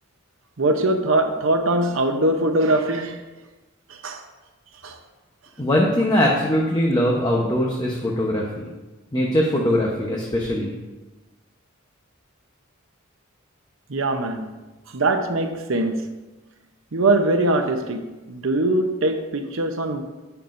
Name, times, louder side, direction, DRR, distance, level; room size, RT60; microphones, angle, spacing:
voice 1, 0.6-3.2 3.9-4.2 4.8-5.0 13.9-14.5 14.9-16.0 16.9-20.0, right 2 dB, 70° right, 6 dB, 0.8 m, -22 dB
voice 2, 5.6-8.7 9.1-10.7, left 1 dB, 20° left, -2 dB, 1.0 m, -21 dB
16.5 x 5.9 x 2.6 m, 1.1 s
head